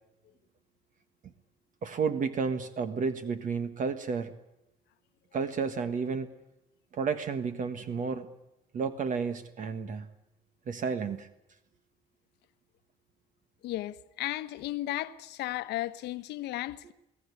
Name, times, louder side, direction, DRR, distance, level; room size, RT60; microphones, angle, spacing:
voice 1, 1.8-4.3 5.3-6.3 6.9-8.3 8.7-10.1 10.7-11.3, right 5 dB, 50° right, 1.6 m, -31 dB
voice 2, 13.6-16.9, left 15 dB, 85° left, 1.2 m, -35 dB
22.5 x 17.0 x 9.8 m
cardioid pair, 110°, 17 cm